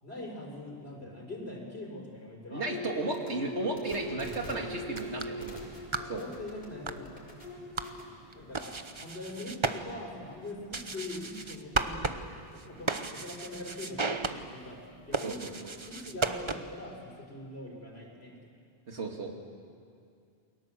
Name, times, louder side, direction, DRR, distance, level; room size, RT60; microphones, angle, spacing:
voice 1, 0.0-2.7 5.9-7.2 8.3-12.2 12.5-15.4 15.8-18.4, left 2 dB, 70° left, 1 dB, 4.7 m, -43 dB
voice 2, 2.5-5.6 6.0-6.2 15.2-15.7 18.9-19.3, right 2 dB, 90° right, 2 dB, 2.9 m, -34 dB
sound 1, 2.6-8.0, equal, 40° left, 5.0 m, -42 dB
sound 2, 4.8-16.9, right 3 dB, 30° right, 0.9 m, -37 dB
29.0 x 22.0 x 7.7 m, 2.3 s
omnidirectional pair, 1.1 m